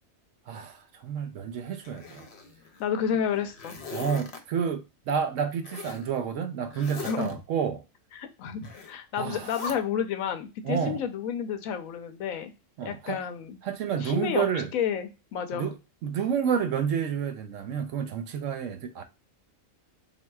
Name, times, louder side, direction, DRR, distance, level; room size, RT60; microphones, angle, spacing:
voice 1, 0.5-2.3 3.9-7.8 9.1-9.5 10.6-11.0 12.8-13.2 13.6-14.7 15.5-15.8 16.0-19.0, right 7 dB, 70° right, 0.9 m, -30 dB
Zipper (clothing), 1.8-2.8 3.3-4.4 5.6-6.1 6.7-7.3 8.6-8.9 9.3-9.7, left 4 dB, 60° left, 0.9 m, -40 dB
voice 2, 2.8-3.8 7.0-7.4 8.1-12.5 12.8-13.6 14.0-14.5 14.7-15.7, left 8 dB, 80° left, 1.0 m, -30 dB
3.7 x 2.6 x 2.2 m
omnidirectional pair, 1.4 m